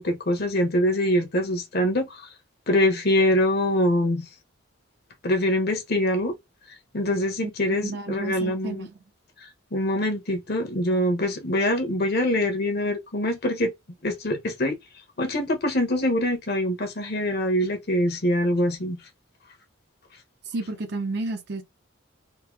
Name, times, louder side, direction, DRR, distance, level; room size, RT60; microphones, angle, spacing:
voice 1, 0.0-2.3 2.7-4.3 5.2-6.3 6.9-8.9 9.7-13.7 14.0-14.8 15.2-19.0, left 1 dB, 50° left, 1.0 m, -24 dB
voice 2, 7.4-9.0 20.5-21.6, right 2 dB, 55° right, 0.8 m, -32 dB
3.8 x 2.7 x 3.0 m
head